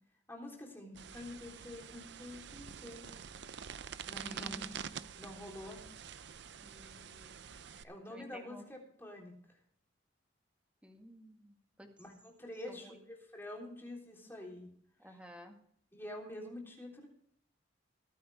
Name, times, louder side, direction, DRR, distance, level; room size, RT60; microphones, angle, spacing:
voice 1, 0.3-3.1 4.1-4.7 5.2-5.8 7.8-9.6 12.0-14.7 15.1-15.2 15.9-17.1, left 1 dB, 10° left, -1 dB, 3.6 m, -47 dB
sound 1, 1.0-7.8, right 7 dB, 60° right, 0.6 m, -47 dB
voice 2, 4.2-5.0 6.6-8.6 10.8-11.9 12.7-13.0 15.0-15.6, equal, 5° right, 3 dB, 1.9 m, -54 dB
20.5 x 9.4 x 3.5 m, 0.64 s
head